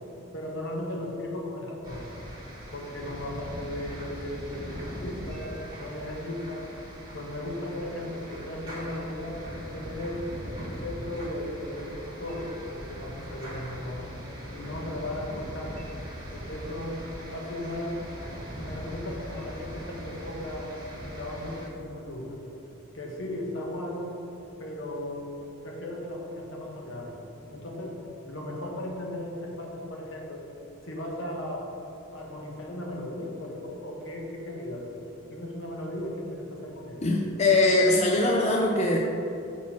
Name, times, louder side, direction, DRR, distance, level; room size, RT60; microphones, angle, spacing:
voice 1, 0.3-2.0 2.7-6.7 7.1-9.4 9.7-11.9 12.2-14.2 14.5-15.9 16.3-17.1 17.3-18.1 18.6-20.7 21.1-22.4 22.9-24.1 24.6-25.3 25.6-28.0 28.3-30.5 30.8-31.7 32.1-34.9 35.3-37.1, left 1 dB, 65° left, 0 dB, 1.1 m, -36 dB
sound 1, 1.8-21.7, equal, 20° right, 1.4 m, -40 dB
voice 2, 37.0-39.0, left 2 dB, 30° left, 0 dB, 0.4 m, -22 dB
6.0 x 4.2 x 5.9 m, 2.8 s
head